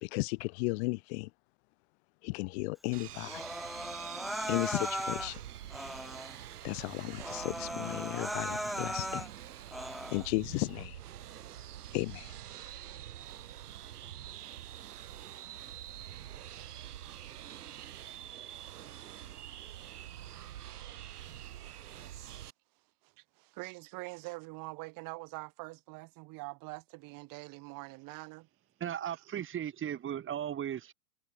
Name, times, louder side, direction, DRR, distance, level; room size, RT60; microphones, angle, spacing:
voice 1, 0.0-1.3 2.2-3.5 4.5-5.4 6.6-9.3 9.8-11.0 11.9-12.4, left 28 dB, 40° left, 0.9 m, -35 dB
sound 1, 2.9-22.5, right 11 dB, 70° right, 3.4 m, -46 dB
Human voice, 3.2-5.3 5.7-6.4 6.8-6.9 7.2-9.3 9.7-10.3, equal, ahead, 0.5 m, -38 dB
voice 2, 23.0-28.5, right 25 dB, 40° right, 4.0 m, -44 dB
voice 3, 28.8-30.9, right 10 dB, 25° right, 3.5 m, -36 dB
hypercardioid pair, 105°, 48 cm